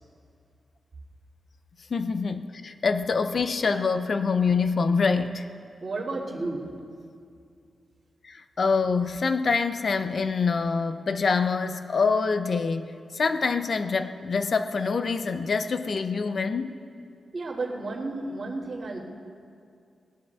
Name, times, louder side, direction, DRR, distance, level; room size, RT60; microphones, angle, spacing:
voice 1, 1.9-5.5 8.2-16.8, left 4 dB, 45° left, 0.5 m, -25 dB
voice 2, 5.8-6.7 17.3-19.0, right 2 dB, 40° right, 2.6 m, -32 dB
22.5 x 20.0 x 2.4 m
wide cardioid pair, 155°, 0 cm